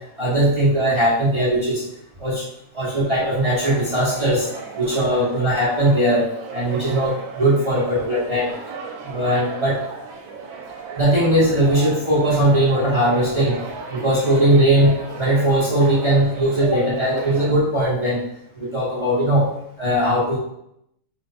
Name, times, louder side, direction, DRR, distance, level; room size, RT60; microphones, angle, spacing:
voice 1, 0.0-1.8 2.2-2.4 2.7-4.5 4.8-6.3 6.5-8.5 9.0-9.8 10.9-13.6 13.9-18.2 18.5-19.5 19.8-20.4, right 1 dB, 45° right, -9 dB, 0.4 m, -19 dB
sound 1, 3.1-17.5, right 4 dB, 75° right, 1.3 m, -36 dB
4.5 x 2.2 x 4.0 m, 0.77 s
omnidirectional pair, 2.2 m